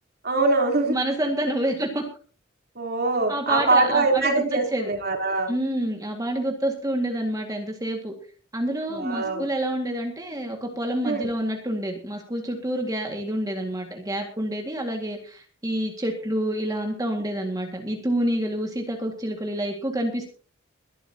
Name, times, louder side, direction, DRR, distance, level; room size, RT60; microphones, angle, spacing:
voice 1, 0.2-0.9 2.8-5.5 8.9-9.4 11.0-11.3, right 3 dB, 50° right, 2 dB, 3.7 m, -23 dB
voice 2, 0.9-2.0 3.3-4.9 5.5-8.1 8.5-20.3, right 1 dB, 20° right, 1 dB, 2.0 m, -28 dB
22.0 x 12.0 x 2.9 m, 0.40 s
head